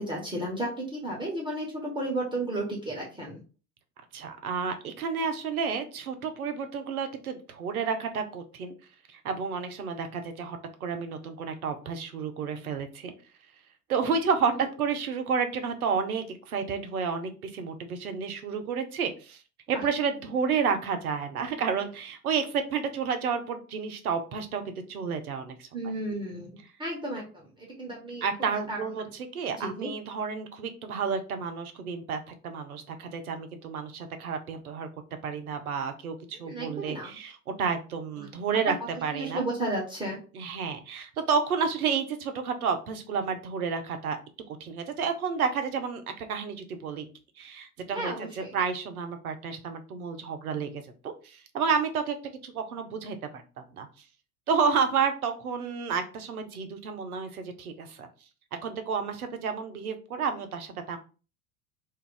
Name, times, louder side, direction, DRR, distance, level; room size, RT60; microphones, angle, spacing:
voice 1, 0.0-3.4 14.5-14.6 19.7-19.9 25.7-28.9 29.6-29.9 36.4-37.1 38.2-38.3 39.1-40.2 47.9-48.6, right 1 dB, 10° right, -3 dB, 1.1 m, -33 dB
voice 2, 4.1-8.7 9.1-13.1 13.9-19.4 19.7-25.7 28.2-34.9 35.2-38.8 39.0-39.4 40.3-44.2 44.6-47.1 47.4-52.2 52.4-53.4 53.7-53.9 54.5-58.1 58.6-61.0, right 6 dB, 80° right, 7 dB, 0.7 m, -31 dB
2.6 x 2.3 x 3.8 m, 0.35 s
figure-of-eight pair, 80°, 44 cm